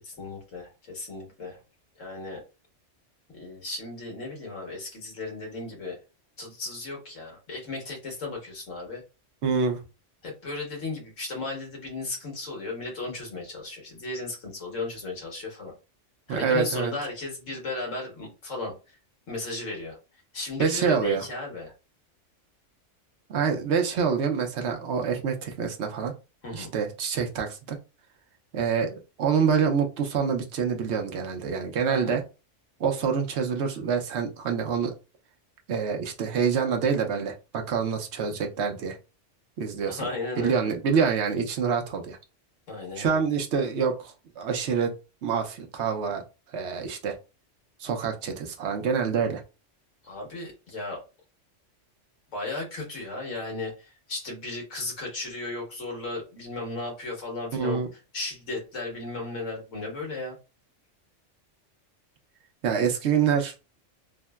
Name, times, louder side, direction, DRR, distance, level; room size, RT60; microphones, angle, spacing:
voice 1, 0.0-1.6 1.9-2.4 3.3-6.0 6.4-9.0 10.2-15.7 16.3-19.0 19.3-20.0 20.3-21.7 26.4-26.7 31.8-32.2 39.9-40.7 42.7-43.2 50.0-51.0 52.3-60.4, left 2 dB, 85° left, 0 dB, 1.7 m, -35 dB
voice 2, 9.4-9.8 16.3-16.9 20.6-21.2 23.3-26.1 26.5-27.8 28.5-32.2 32.8-34.9 35.7-39.0 39.6-40.0 40.4-42.2 43.0-44.9 45.2-46.2 46.5-47.1 47.8-49.4 57.5-57.9 62.6-63.5, right 6 dB, 70° right, 4 dB, 0.9 m, -26 dB
3.6 x 2.1 x 2.2 m, 0.29 s
omnidirectional pair, 1.3 m